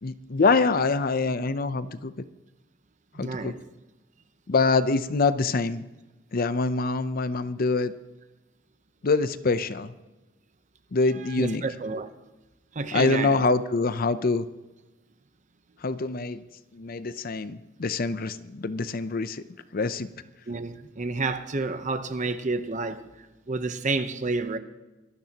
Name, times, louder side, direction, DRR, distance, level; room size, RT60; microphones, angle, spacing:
voice 1, 0.0-2.1 3.2-3.5 4.5-5.8 6.3-7.9 9.0-9.9 10.9-11.6 12.9-14.4 15.8-16.4 16.7-19.4 19.7-20.1, left 3 dB, 50° left, 0.6 m, -25 dB
voice 2, 3.1-3.6 11.1-12.1 12.7-13.5 20.5-23.0 23.5-24.6, right 3 dB, 40° right, 0.8 m, -30 dB
24.0 x 12.0 x 2.9 m
head